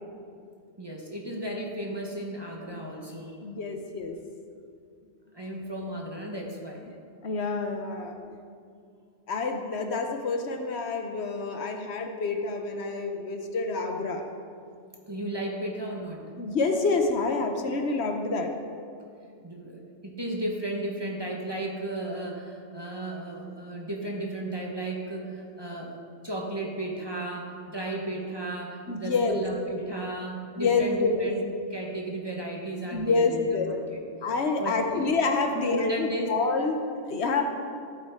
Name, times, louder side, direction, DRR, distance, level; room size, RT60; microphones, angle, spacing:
voice 1, 0.8-3.5 5.3-6.9 15.1-16.2 19.4-26.0 26.2-31.4 31.7-34.0 34.6-35.0 35.5-36.3, right 1 dB, 20° right, -1 dB, 1.1 m, -34 dB
voice 2, 3.4-4.2 7.2-8.2 9.3-14.2 16.4-18.5 28.9-29.4 30.6-31.3 32.9-33.7 34.2-37.4, left 4 dB, 65° left, 5 dB, 1.1 m, -27 dB
13.5 x 8.5 x 3.6 m, 2.3 s
omnidirectional pair, 1.2 m